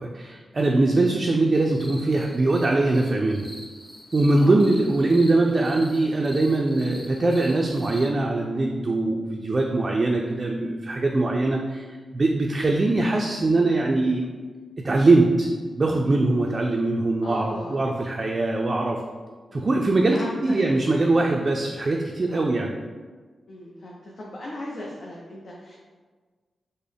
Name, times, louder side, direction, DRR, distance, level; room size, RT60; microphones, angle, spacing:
voice 1, 0.0-3.5 4.1-11.8 12.1-14.2 14.8-15.5 15.8-19.0 19.5-22.7, right 2 dB, 45° right, 0 dB, 0.3 m, -22 dB
sound 1, 1.5-8.1, equal, 10° left, 0.8 m, -44 dB
voice 2, 17.2-17.8 19.5-19.7 20.1-20.6 22.3-22.5 23.5-25.7, left 1 dB, 65° left, -4 dB, 0.5 m, -37 dB
3.7 x 2.0 x 3.4 m, 1.4 s
cardioid pair, 50°, 0 cm